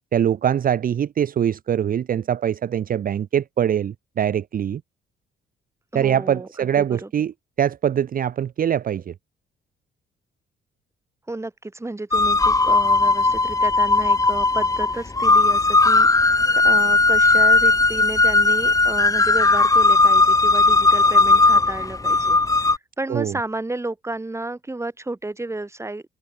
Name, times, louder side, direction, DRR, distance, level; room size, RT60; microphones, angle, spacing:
voice 1, 0.1-4.8 5.9-9.1 23.1-23.4, right 9 dB, 45° right, 0.6 m, -23 dB
voice 2, 5.9-7.1 11.3-26.0, right 2 dB, 15° right, 2.1 m, -32 dB
sound 1, 12.1-22.8, left 3 dB, 15° left, 1.0 m, -17 dB
cardioid pair, 90°, 20 cm